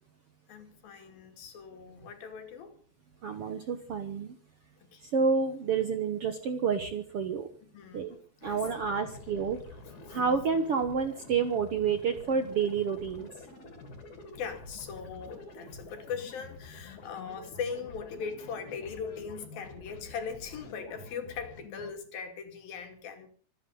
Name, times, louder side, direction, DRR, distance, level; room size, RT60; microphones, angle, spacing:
voice 1, 0.5-2.8 4.9-5.1 7.6-8.6 10.1-10.4 14.4-23.3, left 6 dB, 80° left, 5 dB, 4.3 m, -40 dB
voice 2, 3.2-4.3 5.0-7.5 7.9-8.1 8.4-9.6 10.1-13.3, right 5 dB, 60° right, 8 dB, 1.6 m, -29 dB
sound 1, 8.4-21.9, left 3 dB, 55° left, 4.6 m, -48 dB
25.5 x 10.0 x 5.5 m, 0.43 s
omnidirectional pair, 4.1 m